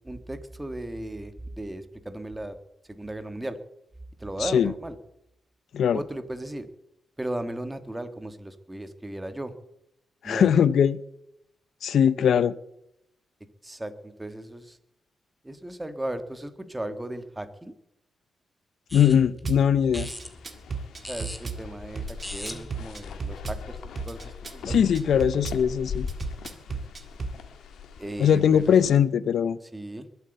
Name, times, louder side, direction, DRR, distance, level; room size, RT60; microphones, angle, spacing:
voice 1, 0.0-2.6 2.8-3.6 4.2-5.0 5.9-6.7 7.2-9.5 10.2-10.6 13.6-14.8 15.4-17.7 21.1-25.5 28.0-28.9 29.7-30.1, right 1 dB, 10° right, 9 dB, 1.5 m, -36 dB
voice 2, 4.4-4.7 5.7-6.0 10.2-11.0 11.8-12.6 18.9-20.1 24.6-26.1 28.2-29.6, left 8 dB, 70° left, 17 dB, 0.6 m, -21 dB
sound 1, 18.9-23.7, left 1 dB, 5° left, 1.8 m, -42 dB
Drum kit / Bass drum, 19.4-19.6 19.9-21.6 21.9-23.6 23.9-25.6 26.1-27.4, right 5 dB, 35° right, 2.0 m, -34 dB
sound 2, 20.0-29.0, left 6 dB, 85° left, 1.8 m, -40 dB
21.5 x 8.1 x 7.9 m, 0.80 s
cardioid pair, 115°, 0 cm